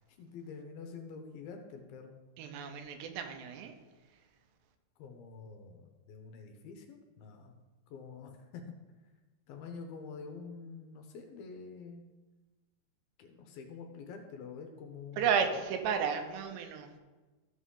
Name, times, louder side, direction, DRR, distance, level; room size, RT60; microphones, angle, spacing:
voice 1, 0.2-2.2 5.0-7.6 7.9-8.6 9.5-12.0 13.2-15.3, left 5 dB, 75° left, 4 dB, 2.5 m, -47 dB
voice 2, 2.4-3.7 15.2-16.9, right 7 dB, 85° right, 6 dB, 3.0 m, -32 dB
14.0 x 6.2 x 3.7 m, 1.2 s
omnidirectional pair, 4.8 m